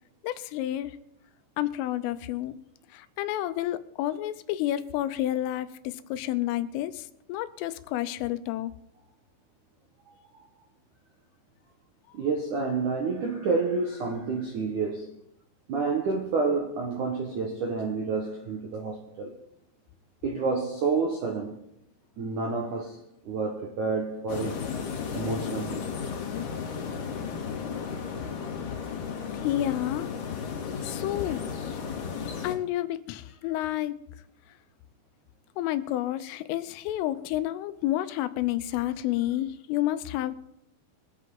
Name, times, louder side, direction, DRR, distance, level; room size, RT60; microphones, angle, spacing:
voice 1, 0.2-1.0 1.6-2.5 2.9-8.7 29.4-30.1 30.8-31.5 32.4-34.0 35.6-40.4, left 13 dB, 90° left, 3.3 m, -30 dB
voice 2, 12.1-15.1 15.7-19.4 20.2-21.5 22.2-23.0 23.3-24.7 25.1-25.9, right 4 dB, 75° right, 1.8 m, -29 dB
sound 1, 24.3-32.6, left 6 dB, 60° left, 3.6 m, -34 dB
23.5 x 8.3 x 3.8 m
omnidirectional pair, 5.7 m